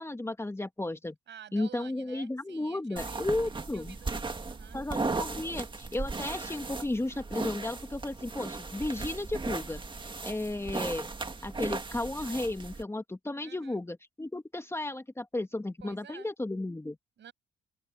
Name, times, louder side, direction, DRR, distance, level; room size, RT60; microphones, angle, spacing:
voice 1, 0.0-1.2 1.5-4.0 4.7-9.8 10.2-11.1 11.4-17.0, left 2 dB, 15° left, 2.1 m, -34 dB
voice 2, 1.3-4.8 13.4-13.8 15.8-16.3 17.2-17.3, right 9 dB, 65° right, 7.0 m, -51 dB
sound 1, 3.0-12.8, right 3 dB, 25° right, 2.1 m, -37 dB
open air
cardioid pair, 90°, 20 cm